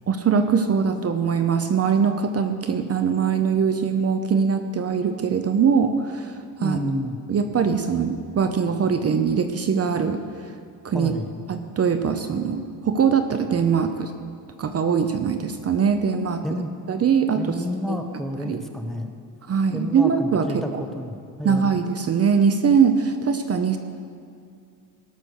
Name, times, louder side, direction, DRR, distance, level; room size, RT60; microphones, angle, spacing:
voice 1, 0.1-6.8 7.3-10.2 10.8-11.1 11.5-14.1 14.6-16.4 16.9-17.5 17.9-18.0 18.4-18.6 19.5-20.8 21.4-23.8, right 6 dB, 40° right, 8 dB, 0.6 m, -22 dB
voice 2, 6.6-7.2 10.9-11.4 16.4-16.7 17.3-19.1 19.7-21.8, left 1 dB, ahead, 5 dB, 0.7 m, -30 dB
17.5 x 6.2 x 6.4 m, 2.4 s
cardioid pair, 145°, 40 cm